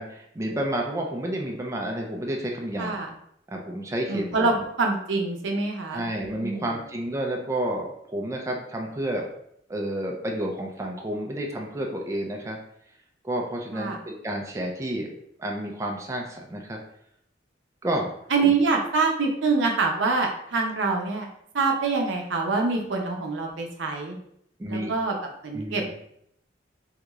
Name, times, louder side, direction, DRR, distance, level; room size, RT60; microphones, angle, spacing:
voice 1, 0.0-3.0 3.5-4.6 5.9-9.3 9.7-12.6 13.2-15.1 15.4-16.8 17.8-18.1 18.4-18.5 24.6-24.9 25.5-25.9, right 1 dB, 15° right, 0 dB, 0.4 m, -30 dB
voice 2, 2.8-3.1 4.1-6.0 6.3-6.7 13.7-14.0 18.3-21.3 21.5-24.2 24.7-25.2 25.4-25.9, right 4 dB, 80° right, 1 dB, 0.6 m, -25 dB
3.6 x 2.3 x 3.0 m, 0.71 s
head